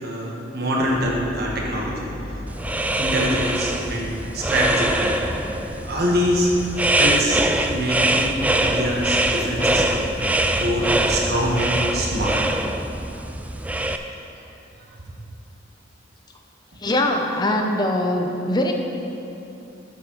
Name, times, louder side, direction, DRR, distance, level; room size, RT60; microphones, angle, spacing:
voice 1, 0.0-2.1 3.0-5.3 5.8-7.4 7.7-12.6 13.8-14.0 14.4-14.5, equal, 55° right, -3 dB, 1.3 m, -25 dB
sound 1, 0.8-12.2, equal, 45° left, 1.5 m, -36 dB
sound 2, 2.5-14.0, right 1 dB, 10° right, 0.3 m, -23 dB
voice 2, 16.8-18.7, left 1 dB, 20° left, 3 dB, 0.7 m, -22 dB
9.6 x 7.3 x 4.6 m, 2.9 s
head